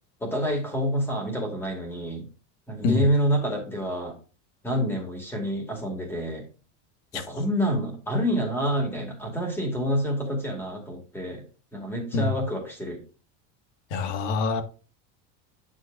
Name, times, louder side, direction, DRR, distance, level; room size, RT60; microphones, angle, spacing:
voice 1, 0.2-2.3 2.7-4.1 4.6-6.4 7.1-11.4 11.7-13.0, equal, 5° left, 2.2 m, -27 dB
voice 2, 13.9-14.6, left 4 dB, 70° left, 1.8 m, -25 dB
8.7 x 7.6 x 2.5 m
cardioid pair, 175°, 37 cm